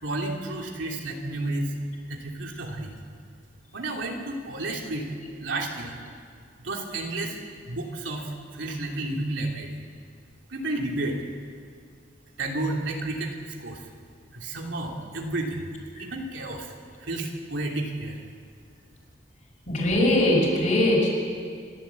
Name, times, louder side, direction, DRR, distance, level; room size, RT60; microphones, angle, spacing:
voice 1, 0.0-1.7 2.1-2.9 3.7-5.1 5.4-6.0 6.6-7.4 7.7-9.8 10.5-11.2 12.4-13.8 14.3-15.7 16.0-16.7 17.0-18.2, right 2 dB, 90° right, 0 dB, 3.0 m, -31 dB
voice 2, 19.7-21.1, left 1 dB, 45° left, -2 dB, 6.2 m, -21 dB
27.5 x 12.5 x 8.3 m, 2.1 s
head